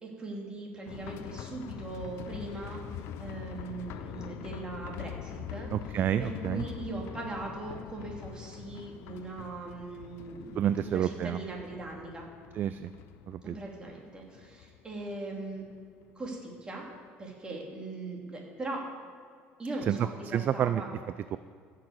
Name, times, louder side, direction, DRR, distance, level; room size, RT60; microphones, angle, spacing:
voice 1, 0.0-2.8 3.2-5.7 6.2-12.2 13.4-15.6 16.1-16.9 17.2-18.8 19.6-20.9, right 2 dB, 20° right, -1 dB, 2.7 m, -40 dB
sound 1, 0.9-16.3 16.6-16.7 17.1-17.2, left 10 dB, 65° left, 0.6 m, -44 dB
voice 2, 5.7-6.7 10.5-11.4 12.5-12.9 13.3-13.6 19.9-20.8 21.3-21.4, right 10 dB, 40° right, 13 dB, 0.3 m, -29 dB
14.5 x 6.4 x 7.9 m, 2.2 s
cardioid pair, 150°, 5 cm